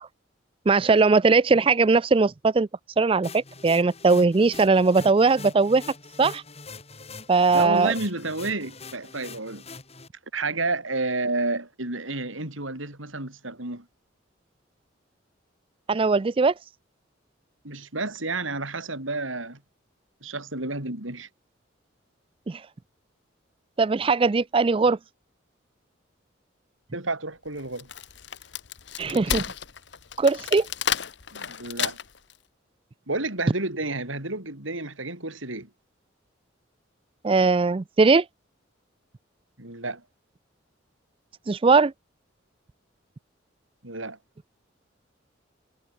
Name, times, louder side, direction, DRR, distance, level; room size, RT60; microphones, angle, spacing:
voice 1, 0.7-2.7 3.0-5.8 6.2-6.4 7.3-7.9 15.9-16.5 22.5-22.6 23.8-25.0 29.0-29.4 30.2-30.7 37.2-38.2 41.5-41.9, right 4 dB, 25° right, 0.4 m, -20 dB
sound 1, 3.2-10.1, left 4 dB, 30° left, 4.1 m, -43 dB
voice 2, 7.5-9.6 10.3-13.9 17.6-19.6 20.2-21.3 26.9-27.9 31.3-32.0 33.1-35.7 39.6-40.0 43.8-44.2, right 2 dB, 85° right, 6.8 m, -30 dB
Wood, 27.6-32.3, left 8 dB, 60° left, 1.2 m, -31 dB
head